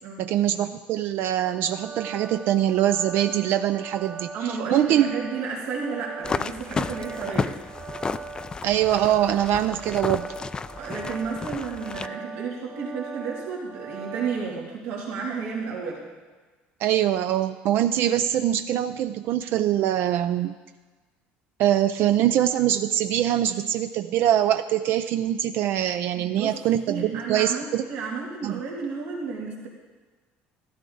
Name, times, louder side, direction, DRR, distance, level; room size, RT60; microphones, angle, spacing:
voice 1, 0.2-5.1 8.6-10.3 16.8-20.6 21.6-27.8 28.4-28.6, right 11 dB, 60° right, 10 dB, 0.4 m, -23 dB
sound 1, 1.4-14.4, right 5 dB, 45° right, 1.2 m, -40 dB
voice 2, 4.3-7.6 10.8-16.0 26.1-26.5 26.9-29.7, right 5 dB, 85° right, -3 dB, 2.7 m, -32 dB
sound 2, 6.2-12.1, left 4 dB, 20° left, 0.3 m, -32 dB
13.0 x 12.5 x 4.0 m, 1.3 s
cardioid pair, 130°, 4 cm